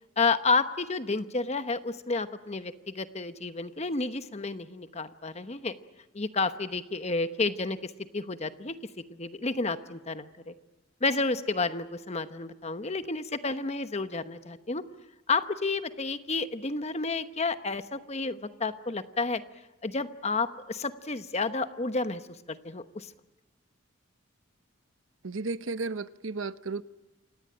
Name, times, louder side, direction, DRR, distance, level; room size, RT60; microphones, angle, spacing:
voice 1, 0.2-5.7 6.1-8.7 9.1-10.5 11.0-14.8 15.3-19.4 19.8-23.1, left 3 dB, 35° left, 1.1 m, -31 dB
voice 2, 25.2-26.8, right 3 dB, 80° right, 0.8 m, -33 dB
27.5 x 18.0 x 8.9 m
head